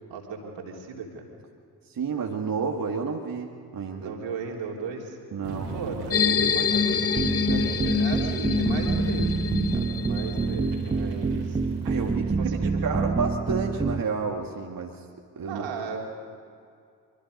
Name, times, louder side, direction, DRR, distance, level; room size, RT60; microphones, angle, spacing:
voice 1, 0.1-1.2 4.0-5.2 5.7-9.4 9.7-11.9 12.2-12.8 15.5-16.0, right 4 dB, 65° right, 0 dB, 3.6 m, -36 dB
voice 2, 1.9-4.1 5.3-5.7 11.8-15.0 15.4-15.7, right 5 dB, 45° right, 1 dB, 1.9 m, -30 dB
sound 1, 5.4-12.1, right 3 dB, 80° right, 3.6 m, -39 dB
sound 2, 6.1-10.8, left 6 dB, 30° left, 1.2 m, -26 dB
sound 3, 7.2-14.0, right 4 dB, 15° right, 0.7 m, -27 dB
24.5 x 24.5 x 5.4 m, 2.3 s
figure-of-eight pair, 40°, 48 cm